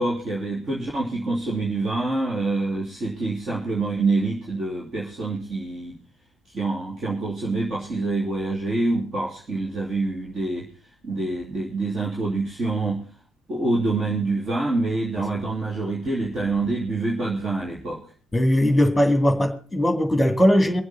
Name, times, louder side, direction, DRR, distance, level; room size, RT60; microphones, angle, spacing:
voice 1, 0.0-6.0 6.5-10.7 11.0-13.0 13.5-18.0, right 2 dB, 35° right, 3.0 m, -26 dB
voice 2, 18.3-20.8, equal, 5° left, 2.5 m, -19 dB
24.0 x 8.0 x 4.2 m
figure-of-eight pair, 55°, 0 cm